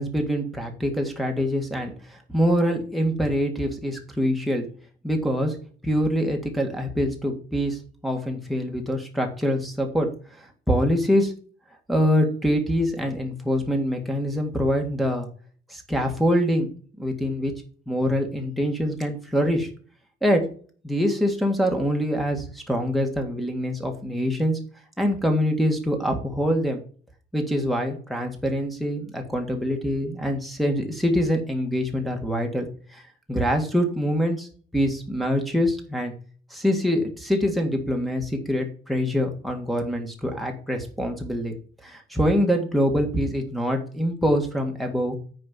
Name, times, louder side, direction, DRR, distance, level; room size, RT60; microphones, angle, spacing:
voice 1, 0.0-4.7 5.0-5.6 5.8-10.1 10.4-11.3 11.9-15.3 15.7-17.5 17.9-19.7 20.2-20.4 20.8-24.6 25.0-26.8 27.3-33.0 33.3-34.5 34.7-36.1 36.5-41.6 41.8-45.2, equal, ahead, 1 dB, 1.8 m, -24 dB
9.7 x 4.5 x 5.8 m, 0.43 s
cardioid pair, 165°, 18 cm